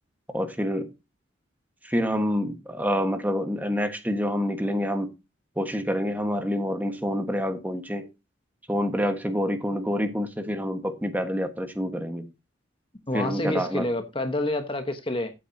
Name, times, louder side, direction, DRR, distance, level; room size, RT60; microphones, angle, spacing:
voice 1, 0.3-0.9 1.8-5.1 5.6-8.1 8.7-12.3 13.1-13.9, equal, 10° right, 1.4 m, -27 dB
voice 2, 13.1-15.3, left 1 dB, 25° left, 1.2 m, -28 dB
14.0 x 8.6 x 2.8 m
head